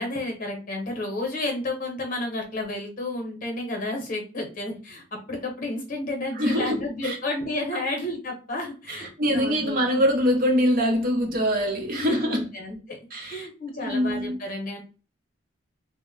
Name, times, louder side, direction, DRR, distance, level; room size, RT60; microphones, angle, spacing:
voice 1, 0.0-10.0 11.9-14.8, left 2 dB, 45° left, 0.9 m, -31 dB
voice 2, 6.3-7.2 7.7-7.8 8.9-12.5 13.1-13.5 13.8-14.3, equal, 50° right, 0.7 m, -24 dB
2.1 x 2.0 x 3.6 m
head